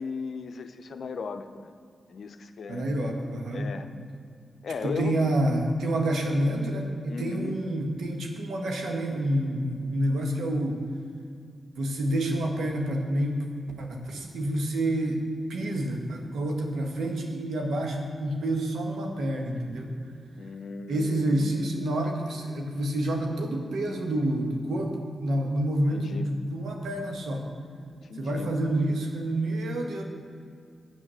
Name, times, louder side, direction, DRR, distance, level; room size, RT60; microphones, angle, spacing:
voice 1, 0.0-1.7 2.1-2.9 3.5-3.9 4.6-5.3 7.1-7.6 20.3-21.6 25.9-26.3 27.9-28.5, left 5 dB, 70° left, 8 dB, 0.6 m, -37 dB
voice 2, 2.7-3.7 4.8-10.8 11.8-13.5 13.8-15.2 15.5-20.0 20.9-27.5 28.2-30.0, right 1 dB, 80° right, 2 dB, 1.2 m, -28 dB
8.5 x 6.3 x 6.2 m, 2.3 s
supercardioid pair, 45°, 0 cm